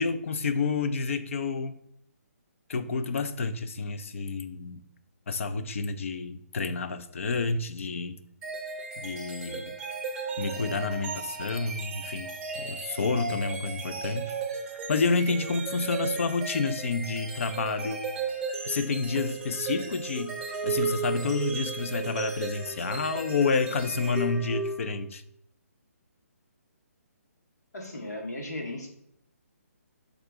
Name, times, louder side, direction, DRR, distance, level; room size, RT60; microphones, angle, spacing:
voice 1, 0.0-1.8 2.7-4.8 5.3-8.2 9.0-9.7 10.4-14.3 14.9-18.0 18.7-25.2, left 4 dB, 55° left, 11 dB, 0.6 m, -29 dB
sound 1, 8.4-25.1, right 5 dB, 10° right, 0.8 m, -35 dB
voice 2, 27.7-28.9, left 1 dB, 85° left, 1 dB, 1.9 m, -36 dB
7.9 x 3.7 x 3.6 m, 0.71 s
hypercardioid pair, 160°, 9 cm